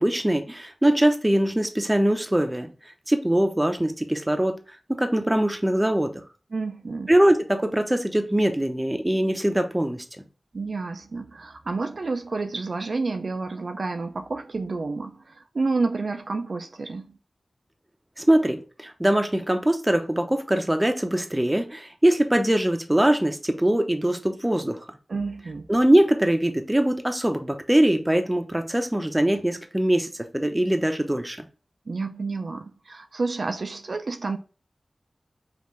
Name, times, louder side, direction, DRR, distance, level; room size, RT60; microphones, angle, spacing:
voice 1, 0.0-2.7 3.1-4.6 4.9-6.2 7.1-10.0 18.2-24.8 25.7-30.1 30.3-31.4, right 1 dB, 10° right, 0.6 m, -22 dB
voice 2, 6.5-7.1 10.5-17.2 25.1-25.7 31.9-34.4, right 3 dB, 65° right, 0.3 m, -30 dB
5.3 x 2.5 x 3.1 m
wide cardioid pair, 90°, 0 cm